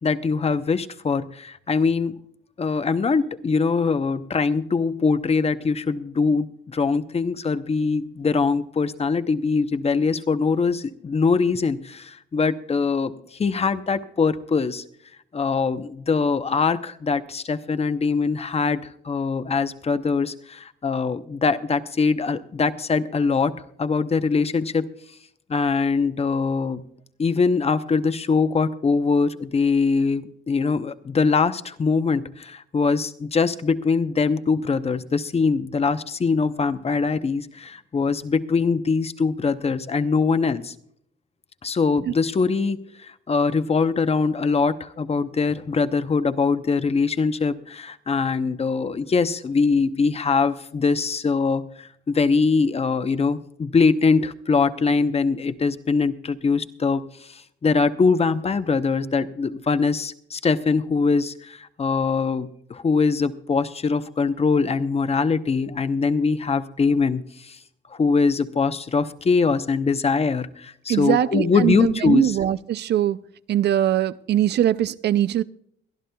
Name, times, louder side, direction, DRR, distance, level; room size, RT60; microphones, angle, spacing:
voice 1, 0.0-2.2 2.6-14.8 15.3-18.8 19.0-24.9 25.5-26.8 27.2-40.7 41.6-57.0 57.3-67.6 67.9-72.4, left 4 dB, 30° left, 12 dB, 0.8 m, -22 dB
voice 2, 70.9-73.2 73.5-75.4, right 11 dB, 60° right, 16 dB, 0.4 m, -21 dB
23.0 x 12.0 x 2.3 m, 0.70 s
cardioid pair, 90°, 20 cm